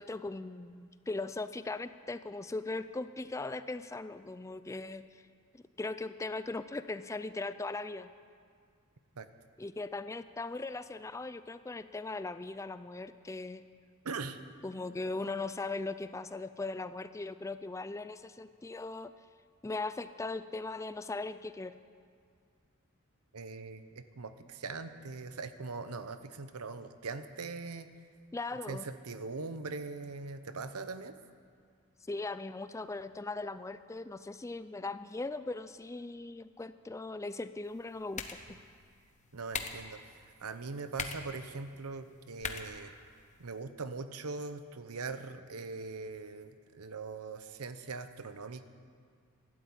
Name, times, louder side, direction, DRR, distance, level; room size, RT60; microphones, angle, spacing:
voice 1, 0.0-5.1 5.5-8.1 9.6-13.7 14.6-19.1 19.6-21.8 28.3-28.9 32.1-38.2, left 3 dB, 15° left, 13 dB, 0.3 m, -39 dB
voice 2, 14.0-14.4 23.3-27.9 28.7-31.1 39.3-40.0 40.4-42.9 43.4-48.6, right 4 dB, 85° right, 11 dB, 0.8 m, -41 dB
sound 1, 37.6-43.6, left 5 dB, 35° left, 0.9 m, -44 dB
12.5 x 12.0 x 8.7 m, 2.1 s
head